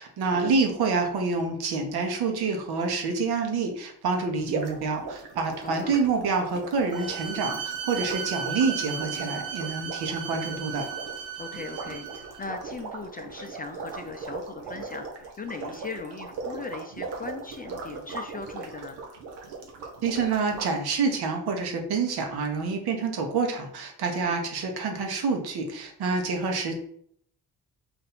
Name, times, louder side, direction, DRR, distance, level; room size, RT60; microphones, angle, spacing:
voice 1, 0.0-10.8 20.0-26.8, right 4 dB, 70° right, 3 dB, 1.1 m, -27 dB
sound 1, 4.4-20.7, right 4 dB, 90° right, 0.9 m, -39 dB
voice 2, 5.6-5.9 11.4-19.0 24.2-24.4, left 4 dB, 25° left, 5 dB, 0.5 m, -39 dB
Bowed string instrument, 6.9-12.4, right 8 dB, 50° right, 0.6 m, -35 dB
4.2 x 2.6 x 4.2 m, 0.66 s
supercardioid pair, 65°, 40 cm